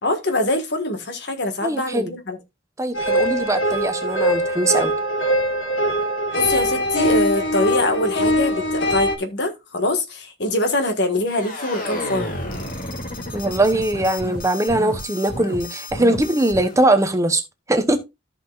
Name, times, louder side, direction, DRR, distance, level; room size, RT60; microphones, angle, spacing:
voice 1, 0.0-2.4 6.3-12.3, left 1 dB, 60° left, 1.6 m, -23 dB
voice 2, 1.6-2.1 2.8-4.9 13.3-17.4 17.7-18.0, right 1 dB, 15° right, 0.9 m, -21 dB
sound 1, 2.9-9.2, equal, 80° left, 1.9 m, -22 dB
sound 2, 11.3-16.8, left 1 dB, 45° left, 2.4 m, -31 dB
14.0 x 5.6 x 2.4 m
head